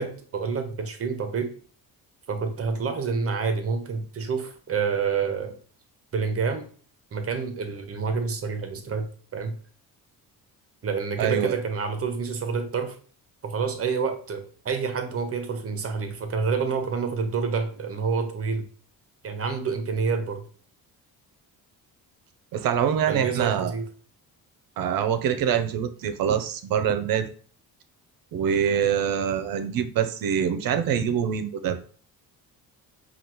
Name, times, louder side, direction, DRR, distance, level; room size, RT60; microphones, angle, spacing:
voice 1, 0.0-1.5 2.3-5.6 6.1-6.6 7.1-9.1 9.3-9.5 10.8-13.0 13.4-18.7 19.2-20.4 23.1-23.8, right 5 dB, 40° right, 7 dB, 0.8 m, -28 dB
voice 2, 11.2-11.5 22.5-23.7 24.8-27.3 28.3-31.8, right 8 dB, 65° right, 10 dB, 0.6 m, -25 dB
5.0 x 2.4 x 2.9 m, 0.42 s
cardioid pair, 105°, 37 cm